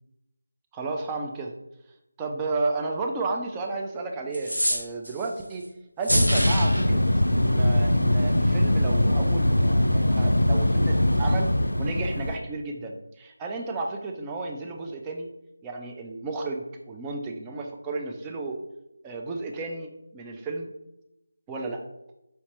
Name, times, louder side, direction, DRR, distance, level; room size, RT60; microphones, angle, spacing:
voice 1, 0.7-1.5 2.2-5.6 6.0-7.0 7.3-11.5 11.8-15.3 15.6-18.6 19.0-20.7 21.5-21.8, right 3 dB, 10° right, 2 dB, 0.3 m, -32 dB
sound 1, 4.3-5.3 6.0-6.8, equal, 85° right, 1.5 m, -25 dB
sound 2, 6.1-12.4, left 1 dB, 85° left, 0.4 m, -22 dB
4.4 x 2.8 x 2.9 m, 0.89 s
figure-of-eight pair, 165°, 0 cm